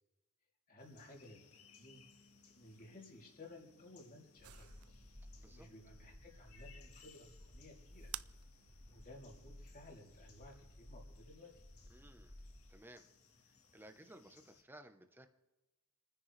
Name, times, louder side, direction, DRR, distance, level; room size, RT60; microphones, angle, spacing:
voice 1, 0.7-2.0 2.5-4.7 5.5-8.1 8.9-11.5, left 2 dB, 40° left, -1 dB, 3.1 m, -57 dB
sound 1, 0.8-14.6, left 5 dB, 75° left, 1.7 m, -66 dB
sound 2, 4.4-12.8, left 1 dB, 20° left, 2.9 m, -57 dB
sound 3, 4.4-9.7, right 15 dB, 70° right, 0.4 m, -55 dB
voice 2, 5.4-5.7 11.9-12.4 12.7-13.1 13.4-15.3, right 1 dB, 10° right, 7 dB, 0.9 m, -58 dB
29.5 x 10.0 x 3.3 m, 1.1 s
head